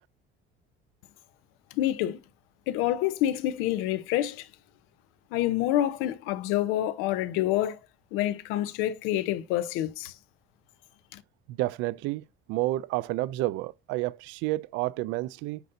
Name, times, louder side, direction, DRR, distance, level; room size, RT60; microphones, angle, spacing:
voice 1, 1.7-2.2 2.7-4.5 5.3-7.8 8.1-10.1 11.1-11.2, left 13 dB, 85° left, 0.7 m, -27 dB
voice 2, 11.5-15.6, right 18 dB, 70° right, 0.4 m, -30 dB
9.2 x 4.0 x 2.6 m
cardioid pair, 165°, 21 cm